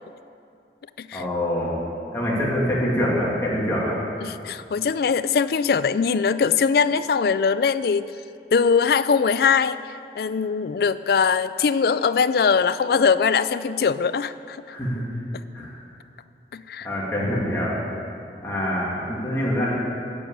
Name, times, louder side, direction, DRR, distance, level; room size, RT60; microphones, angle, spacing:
voice 1, 1.1-1.8 2.1-4.0 14.7-15.0 15.5-15.7 16.8-17.8 18.4-19.7, equal, 15° left, -7 dB, 2.6 m, -25 dB
voice 2, 4.2-8.1 8.5-9.8 10.2-14.6 16.5-16.9, left 6 dB, 55° left, 14 dB, 0.3 m, -21 dB
9.3 x 7.9 x 8.5 m, 2.5 s
head